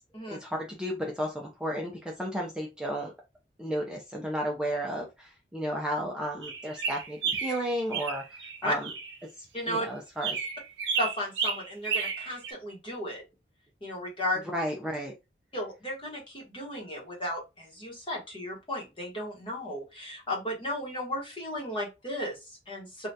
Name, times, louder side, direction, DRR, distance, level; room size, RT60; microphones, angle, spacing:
voice 1, 0.3-3.1 3.6-8.9 9.7-10.3 14.5-15.1, equal, 5° right, -1 dB, 0.5 m, -33 dB
sound 1, 6.4-9.2 10.2-12.5, right 6 dB, 90° right, 0.7 m, -32 dB
voice 2, 9.5-9.9 11.0-13.2 13.8-14.5 15.5-23.1, left 1 dB, 30° left, 0 dB, 1.1 m, -34 dB
3.3 x 2.4 x 2.7 m, 0.25 s
head